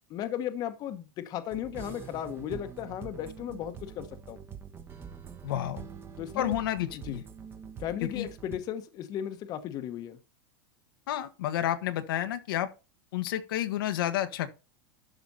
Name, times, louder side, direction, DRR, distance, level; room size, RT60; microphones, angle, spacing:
voice 1, 0.1-4.4 6.2-6.6 7.1-7.2 7.8-10.2, left 10 dB, 35° left, 1.1 m, -36 dB
sound 1, 1.5-8.6, right 7 dB, 20° right, 1.2 m, -45 dB
voice 2, 5.4-5.9 6.3-7.2 8.0-8.3 11.1-12.7 13.1-14.5, left 12 dB, 80° left, 1.3 m, -30 dB
12.0 x 5.0 x 4.1 m
supercardioid pair, 150°, 12 cm